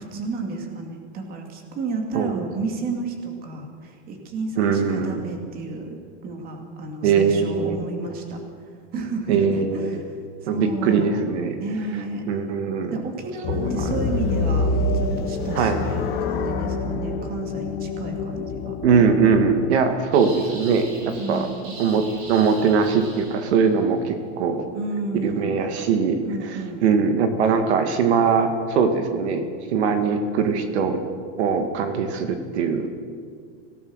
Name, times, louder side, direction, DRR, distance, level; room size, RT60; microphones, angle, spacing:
voice 1, 0.0-8.4 8.9-10.2 10.4-11.1 11.6-12.3 12.9-18.8 21.2-21.7 24.7-25.6 26.2-26.8, right 3 dB, 25° right, 3 dB, 2.7 m, -31 dB
voice 2, 2.1-2.5 4.6-5.2 7.0-7.8 9.3-10.0 10.5-11.6 12.3-13.0 13.5-13.9 15.6-15.8 18.8-21.5 21.8-24.7 25.2-31.0 31.4-32.9, right 5 dB, 75° right, 7 dB, 2.2 m, -21 dB
sound 1, 13.4-19.7, left 3 dB, 30° left, 1.6 m, -26 dB
sound 2, 20.1-23.8, right 2 dB, 55° right, 5.8 m, -41 dB
25.0 x 18.0 x 6.5 m, 2.1 s
supercardioid pair, 175°, 34 cm